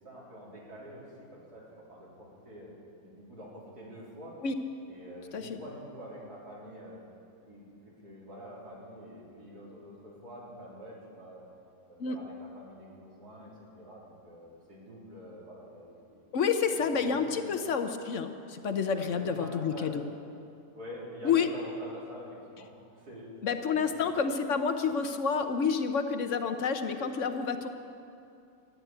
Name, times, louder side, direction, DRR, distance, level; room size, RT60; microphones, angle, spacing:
voice 1, 0.0-4.4 4.9-7.0 7.5-11.4 11.9-16.2 16.5-17.5 18.9-19.9 20.7-24.0, equal, 85° right, -6 dB, 4.2 m, -46 dB
voice 2, 16.3-20.0 21.2-21.5 23.4-27.7, left 6 dB, 60° left, 8 dB, 1.1 m, -29 dB
13.5 x 10.5 x 8.9 m, 2.6 s
omnidirectional pair, 1.6 m